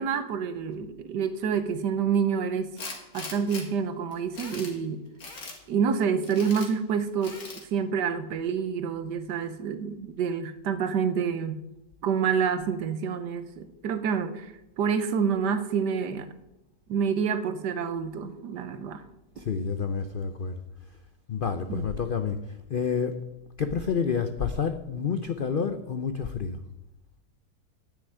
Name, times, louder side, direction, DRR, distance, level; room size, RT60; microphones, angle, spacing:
voice 1, 0.0-2.7 3.1-5.0 5.7-11.6 12.0-16.3 16.9-19.0 21.7-21.9, right 6 dB, 75° right, 11 dB, 1.5 m, -28 dB
Tools, 2.8-3.6 4.1-4.8 5.2-5.6 6.2-6.7 7.2-7.6, left 3 dB, 55° left, 2.4 m, -40 dB
voice 2, 19.4-20.5 21.3-22.4 22.7-23.2 23.6-26.6, left 6 dB, 90° left, 9 dB, 0.4 m, -29 dB
9.8 x 7.0 x 9.2 m, 0.91 s
omnidirectional pair, 1.9 m